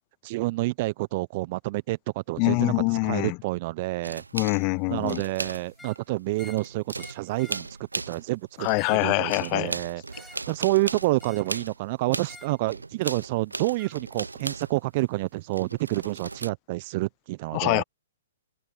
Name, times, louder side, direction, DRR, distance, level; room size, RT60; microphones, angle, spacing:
voice 1, 0.2-2.7 3.0-4.2 4.9-7.7 8.1-8.7 9.0-17.8, right 21 dB, 40° right, 1.0 m, -28 dB
voice 2, 2.4-3.4 4.3-5.2 8.6-9.8 17.5-17.8, left 36 dB, 35° left, 0.8 m, -24 dB
sound 1, 4.0-6.0 6.3-8.4 8.6-15.0 15.5-16.5, right 3 dB, 85° right, 1.1 m, -37 dB
sound 2, 5.7-6.0 6.3-6.7 7.0-7.7 8.6-9.1 10.1-10.5 11.2-11.6 12.2-12.6 13.8-14.0, left 3 dB, 5° left, 2.6 m, -49 dB
open air
figure-of-eight pair, 120°, 0 cm